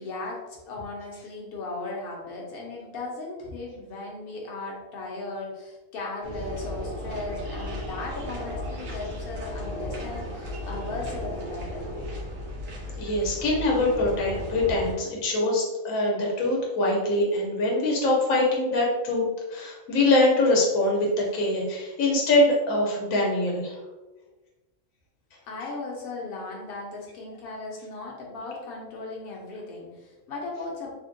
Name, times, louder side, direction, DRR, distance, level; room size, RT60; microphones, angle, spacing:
voice 1, 0.0-11.9 25.4-30.9, left 3 dB, 50° left, -2 dB, 0.8 m, -37 dB
sound 1, 6.2-14.9, left 1 dB, 70° right, 1.2 m, -35 dB
voice 2, 13.0-23.8, left 2 dB, 75° left, -2 dB, 1.1 m, -23 dB
3.4 x 2.2 x 2.5 m, 1.1 s
omnidirectional pair, 1.4 m